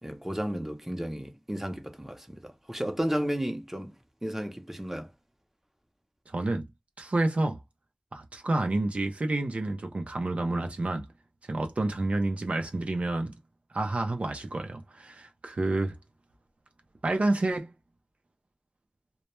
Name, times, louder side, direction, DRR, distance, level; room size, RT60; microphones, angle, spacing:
voice 1, 0.0-4.0 4.2-5.1, equal, 15° right, 0.6 m, -33 dB
voice 2, 6.3-6.6 7.0-7.6 8.1-11.0 11.5-13.3 13.7-16.0 17.0-17.7, right 2 dB, 75° right, 0.4 m, -29 dB
2.1 x 2.1 x 2.9 m
wide cardioid pair, 50°, 2 cm